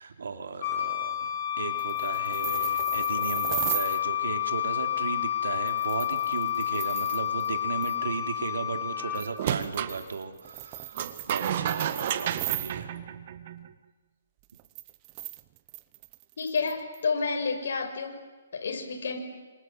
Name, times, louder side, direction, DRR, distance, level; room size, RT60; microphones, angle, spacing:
voice 1, 0.0-11.0 11.3-12.9, right 5 dB, 80° right, 6 dB, 3.4 m, -35 dB
Wind instrument woodwind instrument, 0.6-9.3, left 12 dB, 35° left, 5.6 m, -29 dB
sound 1, 1.7-4.0 5.7-7.5 7.8-8.0 9.1-12.7 14.4-17.0, right 20 dB, 25° right, 0.9 m, -37 dB
sound 2, 9.4-10.0 11.0-13.7, right 10 dB, 45° right, 1.8 m, -31 dB
voice 2, 16.4-18.2 18.5-19.2, left 4 dB, 65° left, 3 dB, 6.6 m, -30 dB
28.0 x 26.5 x 8.0 m, 1.3 s
hypercardioid pair, 160°, 0 cm